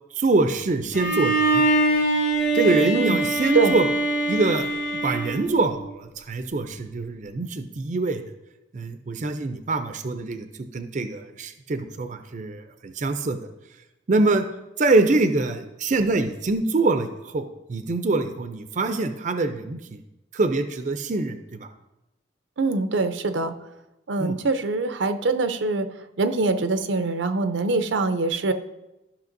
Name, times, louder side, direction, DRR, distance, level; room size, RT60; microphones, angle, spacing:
voice 1, 0.2-1.6 2.5-3.9 4.3-4.7 5.0-8.2 8.7-13.4 14.1-14.5 14.8-20.0 20.3-21.4 24.2-24.4, right 3 dB, 40° right, 8 dB, 0.5 m, -24 dB
Bowed string instrument, 0.9-6.0, right 2 dB, 75° left, 2.4 m, -23 dB
voice 2, 22.6-23.5 24.1-25.9 26.2-28.5, right 3 dB, 85° right, 9 dB, 0.6 m, -23 dB
13.0 x 5.7 x 2.6 m, 0.96 s
head